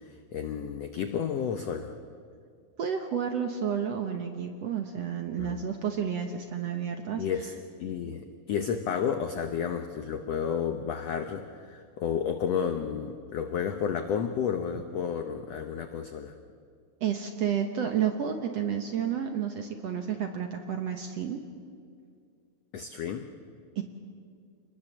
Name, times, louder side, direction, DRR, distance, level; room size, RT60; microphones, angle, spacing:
voice 1, 0.3-1.9 5.4-5.6 7.2-7.5 7.8-16.3 22.7-23.3, left 7 dB, 80° left, 7 dB, 1.4 m, -31 dB
voice 2, 2.8-7.2 17.0-21.4 23.7-23.8, right 8 dB, 65° right, 5 dB, 1.7 m, -31 dB
27.5 x 21.0 x 7.3 m, 2.2 s
omnidirectional pair, 4.2 m